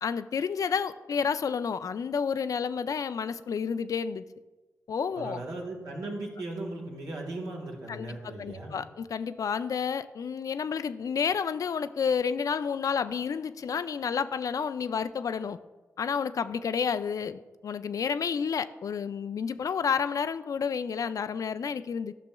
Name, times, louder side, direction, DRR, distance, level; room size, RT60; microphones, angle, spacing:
voice 1, 0.0-4.2 4.9-5.4 7.9-15.6 16.0-22.1, left 6 dB, 60° left, 13 dB, 0.3 m, -30 dB
voice 2, 5.1-8.8, right 2 dB, 80° right, 0 dB, 1.6 m, -37 dB
11.5 x 5.9 x 2.3 m, 1.2 s
supercardioid pair, 45°, 7 cm